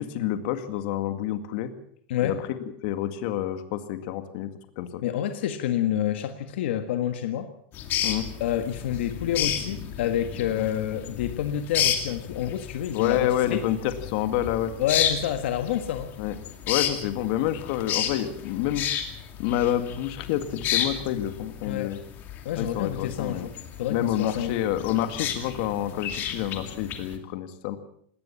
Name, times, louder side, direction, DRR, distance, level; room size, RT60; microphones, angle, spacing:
voice 1, 0.0-1.7 2.2-4.5 4.8-5.0 8.0-8.3 10.6-10.7 12.9-14.7 16.2-16.3 16.7-18.9 19.4-22.0 22.6-23.5 23.9-27.8, left 12 dB, 50° left, 9 dB, 2.1 m, -28 dB
voice 2, 5.0-7.5 8.4-13.6 14.8-16.1 21.6-22.0 22.4-24.6, left 10 dB, 70° left, 8 dB, 1.6 m, -28 dB
sound 1, 7.7-27.2, left 9 dB, 30° left, 2.4 m, -32 dB
20.0 x 18.0 x 7.2 m, 0.65 s
supercardioid pair, 165°, 6 cm